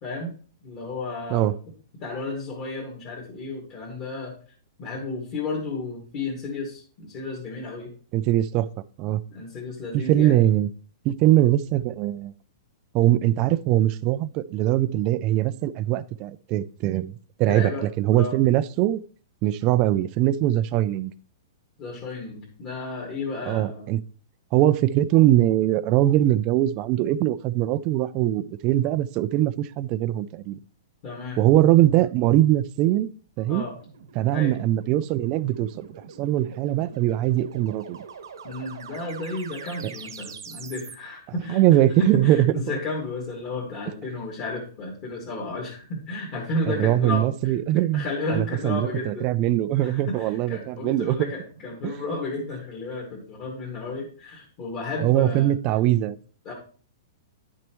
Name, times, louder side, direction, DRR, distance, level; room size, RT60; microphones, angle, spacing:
voice 1, 0.0-0.3 0.6-1.5 2.0-4.3 4.8-7.9 9.3-10.4 17.5-17.9 18.1-18.3 21.8-23.9 31.0-31.4 33.5-33.7 34.3-34.6 38.4-47.5 47.9-49.3 49.8-55.5 56.4-56.5, left 2 dB, 35° left, 2.2 m, -32 dB
voice 2, 8.1-8.7 9.0-9.2 9.9-10.7 11.0-12.3 12.9-17.1 17.4-17.7 18.0-19.0 19.4-21.1 23.5-24.0 24.5-30.6 31.4-33.1 33.4-33.6 34.2-35.9 36.2-38.0 41.5-42.5 46.7-51.3 51.8-52.0 55.0-56.2, right 14 dB, 30° right, 0.4 m, -21 dB
sound 1, 33.7-40.9 49.2-52.1, right 6 dB, 85° right, 1.3 m, -45 dB
9.9 x 6.1 x 3.0 m
hypercardioid pair, 155°, 2 cm